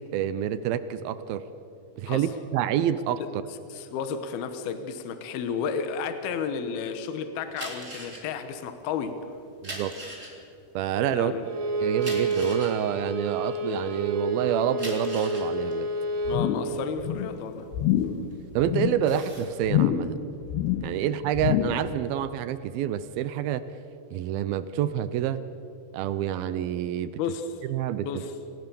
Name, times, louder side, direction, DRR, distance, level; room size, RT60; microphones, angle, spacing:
voice 1, 0.1-1.4 2.0-3.2 9.6-9.9 10.8-11.3 11.8-15.9 18.6-20.2 20.8-23.6 24.1-25.4 25.9-27.1 27.7-28.1, right 10 dB, 75° right, 13 dB, 2.3 m, -27 dB
voice 2, 3.7-9.2 11.1-11.5 16.3-17.7 27.2-27.5 28.1-28.3, left 6 dB, 70° left, 9 dB, 3.0 m, -32 dB
sound 1, 7.5-14.1 14.6-18.4 18.8-19.5, right 1 dB, 15° right, 4.4 m, -41 dB
Bowed string instrument, 11.4-16.5, right 2 dB, 50° right, 2.5 m, -29 dB
sound 2, 16.3-16.8 17.0-17.4 17.7-18.2 18.6-19.0 19.6-20.2 20.4-21.0 21.3-21.9 22.2-22.3, left 12 dB, 90° left, 3.1 m, -26 dB
29.0 x 17.5 x 7.0 m, 2.7 s
omnidirectional pair, 4.8 m